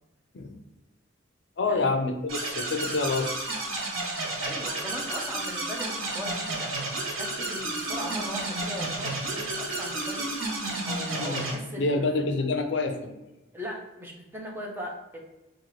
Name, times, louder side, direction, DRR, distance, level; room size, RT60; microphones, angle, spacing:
voice 1, 1.6-3.4 11.2-13.1, left 3 dB, 60° left, 6 dB, 0.5 m, -27 dB
sound 1, 2.3-11.5, right 2 dB, 85° right, 0.9 m, -32 dB
voice 2, 4.4-12.2 13.5-15.2, equal, 10° right, -2 dB, 0.6 m, -39 dB
4.2 x 2.4 x 3.0 m, 1.0 s
head